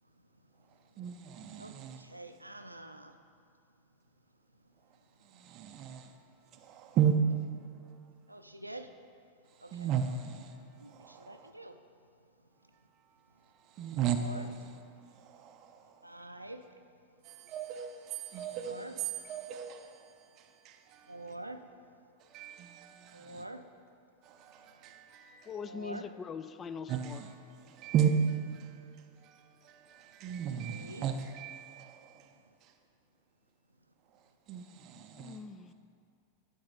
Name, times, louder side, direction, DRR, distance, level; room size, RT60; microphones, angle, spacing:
voice 1, 0.7-2.0 5.2-6.2 6.5-7.2 9.5-11.5 13.4-14.4 14.7-16.1 17.2-21.2 22.2-23.4 24.2-25.6 26.9-32.3 32.6-32.7 34.1-35.4, right 8 dB, 35° right, 0.5 m, -36 dB
voice 2, 1.6-3.2 8.3-8.9 9.6-9.9 10.7-11.8 14.1-14.5 16.0-16.6 18.5-19.0 21.1-21.6 23.1-23.6 25.6-26.1 30.7-31.1, right 1 dB, 85° right, 0.5 m, -46 dB
voice 3, 25.5-27.2 27.7-27.8 35.1-35.7, left 6 dB, 25° left, 0.3 m, -42 dB
11.5 x 5.4 x 4.0 m
figure-of-eight pair, 90°, 0 cm